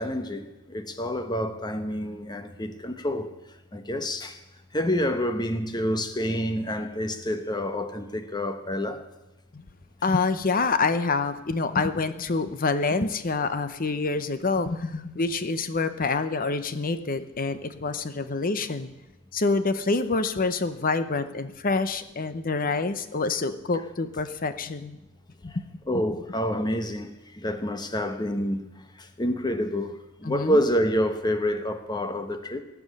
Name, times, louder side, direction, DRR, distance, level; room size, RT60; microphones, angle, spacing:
voice 1, 0.0-3.3 3.7-4.4 4.7-9.1 25.5-25.6 25.9-32.6, equal, 20° left, 1.0 m, -28 dB
voice 2, 10.0-18.9 19.3-25.0 25.4-25.5 25.9-26.0 30.2-30.6, left 3 dB, 40° left, 0.8 m, -27 dB
17.5 x 6.2 x 8.5 m
head